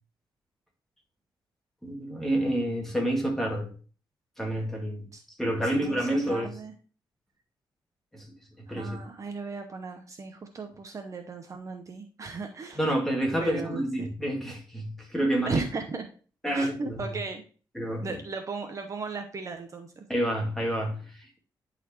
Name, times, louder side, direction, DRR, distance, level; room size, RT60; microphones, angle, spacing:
voice 1, 1.8-3.7 4.4-5.1 5.4-6.5 8.1-8.3 8.6-9.0 12.8-15.6 16.4-17.0 17.8-18.2 20.1-21.4, right 1 dB, 5° left, 2.0 m, -28 dB
voice 2, 5.6-6.7 8.7-12.8 13.4-14.1 15.5-16.1 16.5-17.4 18.0-20.0, right 4 dB, 40° right, 0.8 m, -36 dB
11.0 x 4.1 x 2.9 m
wide cardioid pair, 130°, 8 cm